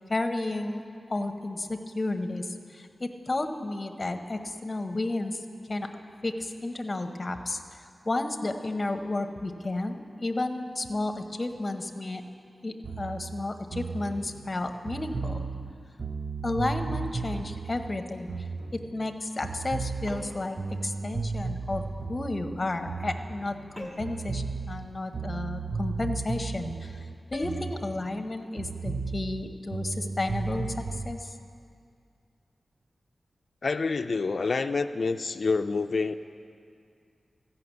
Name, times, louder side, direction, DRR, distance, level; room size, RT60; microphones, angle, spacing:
voice 1, 0.1-0.8 1.1-5.4 5.7-12.2 12.6-15.4 16.4-18.3 18.7-20.6 20.8-27.0 27.3-31.3, left 2 dB, 35° left, 6 dB, 0.7 m, -32 dB
sound 1, 12.8-19.1 19.4-23.7 24.0-28.3 28.6-31.1, right 4 dB, 50° right, 0.4 m, -35 dB
sound 2, 20.1-20.5 23.8-24.2 27.3-27.7, equal, 20° right, 2.1 m, -41 dB
voice 2, 33.6-36.1, left 4 dB, 60° left, 9 dB, 0.3 m, -27 dB
14.5 x 5.7 x 8.0 m, 2.3 s
wide cardioid pair, 95°, 0 cm